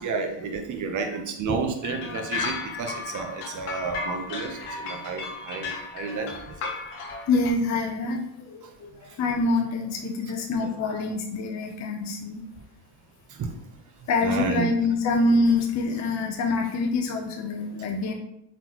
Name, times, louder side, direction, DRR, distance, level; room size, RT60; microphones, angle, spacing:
voice 1, 0.0-6.3 6.6-6.7 13.3-13.5 14.2-14.7, right 4 dB, 40° right, 4 dB, 0.8 m, -31 dB
sound 1, 1.8-7.5, left 4 dB, 85° left, 1.0 m, -34 dB
voice 2, 7.3-8.2 8.5-8.9 9.2-12.4 14.1-18.1, left 3 dB, 35° left, 1 dB, 0.6 m, -25 dB
4.0 x 3.6 x 2.9 m, 0.76 s
cardioid pair, 125°, 49 cm